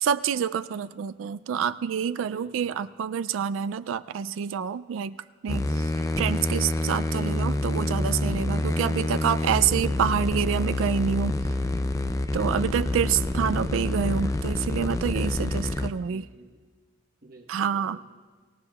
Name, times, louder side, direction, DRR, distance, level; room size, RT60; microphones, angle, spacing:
voice 1, 0.0-5.2 5.4-5.8 6.2-11.4 12.3-16.3 17.5-18.0, right 7 dB, 80° right, 12 dB, 0.3 m, -27 dB
voice 2, 2.2-2.8 12.3-13.8 16.0-16.6 17.2-18.0, equal, 50° right, 1 dB, 1.0 m, -49 dB
sound 1, 5.5-15.9, left 2 dB, 15° left, 0.4 m, -27 dB
25.5 x 17.5 x 2.3 m, 1.5 s
head